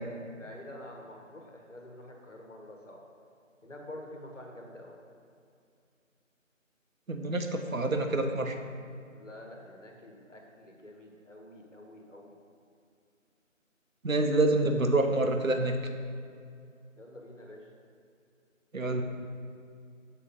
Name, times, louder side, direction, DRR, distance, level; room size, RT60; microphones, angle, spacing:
voice 1, 0.4-3.0 3.6-5.0 9.1-12.3 17.0-17.6, left 1 dB, 65° left, 1 dB, 1.5 m, -47 dB
voice 2, 7.1-8.6 14.0-15.8 18.7-19.0, right 2 dB, 85° right, 5 dB, 0.9 m, -27 dB
6.9 x 4.4 x 5.3 m, 2.4 s
figure-of-eight pair, 165°, 40 cm